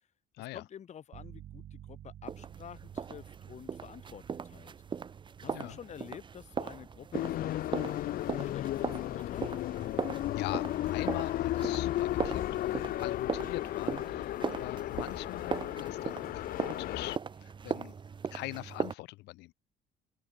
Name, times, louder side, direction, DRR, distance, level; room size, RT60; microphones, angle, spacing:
voice 1, 0.5-4.7 5.4-9.5, left 9 dB, 45° left, 1.2 m, -49 dB
sound 1, 1.1-11.7, right 11 dB, 60° right, 6.5 m, -54 dB
sound 2, 2.3-18.9, right 6 dB, 30° right, 0.9 m, -39 dB
sound 3, 7.1-17.2, left 14 dB, 60° left, 0.5 m, -34 dB
voice 2, 10.3-18.0 18.3-19.5, left 20 dB, 85° left, 1.2 m, -43 dB
cardioid pair, 110°, 17 cm